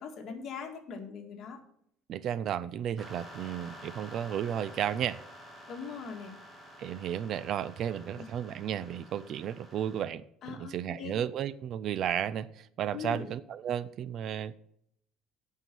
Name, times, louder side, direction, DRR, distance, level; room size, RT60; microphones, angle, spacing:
voice 1, 0.0-1.6 5.7-6.3 8.2-8.3 10.4-11.2 12.9-13.3, left 5 dB, 45° left, 3 dB, 1.9 m, -41 dB
voice 2, 2.1-5.2 6.8-14.6, right 9 dB, 50° right, 17 dB, 0.4 m, -33 dB
sound 1, 3.0-10.0, equal, 15° right, 1.6 m, -50 dB
9.1 x 5.6 x 7.6 m, 0.71 s
cardioid pair, 150°, 0 cm